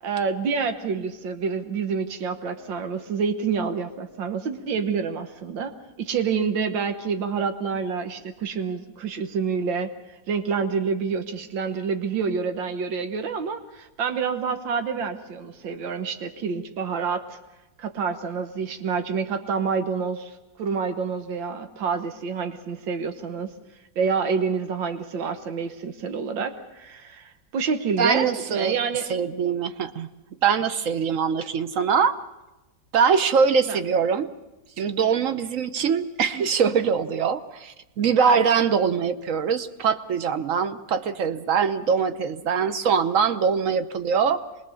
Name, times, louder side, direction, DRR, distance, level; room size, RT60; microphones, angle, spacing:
voice 1, 0.0-9.9 10.3-17.4 17.8-23.5 24.0-29.1 33.7-33.8, right 5 dB, 90° right, 8 dB, 1.9 m, -28 dB
voice 2, 28.0-28.8 29.1-30.1 30.4-32.2 32.9-34.3 34.8-44.4, right 6 dB, 55° right, 11 dB, 1.1 m, -23 dB
24.5 x 21.0 x 7.0 m, 1.0 s
omnidirectional pair, 2.0 m